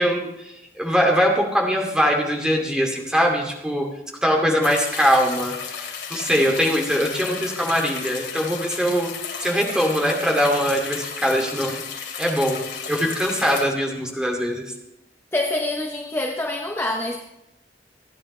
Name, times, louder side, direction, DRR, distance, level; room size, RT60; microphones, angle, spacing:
voice 1, 0.0-3.9 4.2-5.5 6.1-9.1 9.4-11.8 12.2-14.7, equal, 5° right, 0 dB, 2.4 m, -22 dB
sound 1, 4.6-13.6, left 7 dB, 75° left, 2.7 m, -33 dB
voice 2, 15.3-17.2, left 2 dB, 15° left, 2 dB, 0.8 m, -25 dB
29.0 x 9.9 x 3.3 m, 0.90 s
head